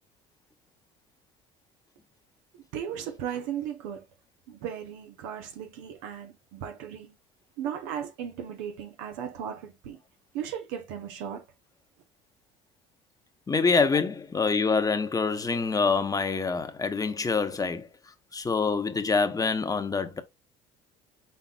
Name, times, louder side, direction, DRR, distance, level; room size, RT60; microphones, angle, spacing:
voice 1, 2.5-4.0 4.5-7.1 7.6-10.0 10.3-11.4, right 9 dB, 85° right, 1.0 m, -36 dB
voice 2, 13.5-17.9 18.3-20.2, left 4 dB, 20° left, 0.9 m, -26 dB
5.6 x 3.9 x 2.3 m
supercardioid pair, 90°, 17 cm